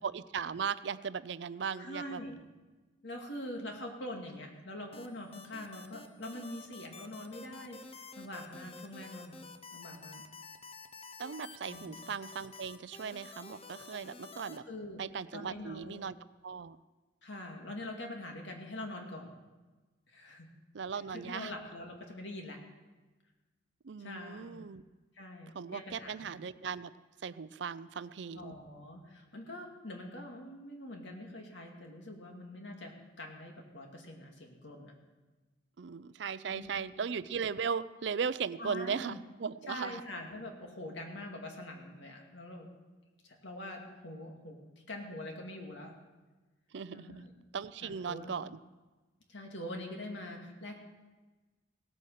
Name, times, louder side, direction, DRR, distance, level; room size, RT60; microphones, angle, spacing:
voice 1, 0.0-2.2 11.2-14.6 15.0-16.2 16.4-16.8 20.7-21.5 23.8-24.8 25.5-26.9 27.2-28.5 35.8-40.0 46.7-47.2 47.5-48.6, right 6 dB, 65° right, 16 dB, 0.5 m, -38 dB
voice 2, 1.8-2.4 3.0-7.8 8.2-9.4 9.7-10.2 11.7-11.9 14.7-15.0 15.3-16.0 17.2-19.3 20.1-20.5 21.1-22.6 24.0-24.7 25.1-26.2 28.3-34.9 36.5-36.7 38.6-39.2 39.7-42.7 43.2-44.6 44.9-45.9 46.9-47.3 47.8-48.4 49.3-50.8, left 1 dB, 70° left, 1 dB, 2.3 m, -44 dB
sound 1, 4.9-14.6, left 4 dB, 30° left, 0.8 m, -50 dB
17.5 x 8.5 x 6.5 m, 1.2 s
head